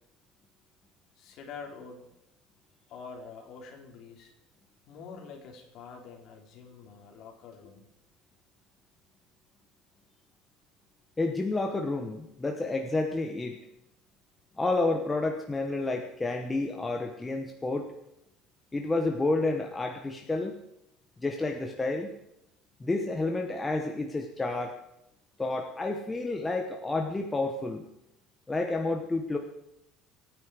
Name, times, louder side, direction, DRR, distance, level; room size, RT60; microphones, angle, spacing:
voice 1, 1.2-2.1 2.9-4.3 4.9-7.9, left 5 dB, 45° left, 2 dB, 3.7 m, -46 dB
voice 2, 11.2-13.6 14.6-17.9 18.7-20.6 21.2-22.1 22.8-24.8 25.4-27.8 28.5-29.4, left 2 dB, 10° left, 3 dB, 1.1 m, -30 dB
25.0 x 9.7 x 5.0 m, 0.82 s
cardioid pair, 180°, 0 cm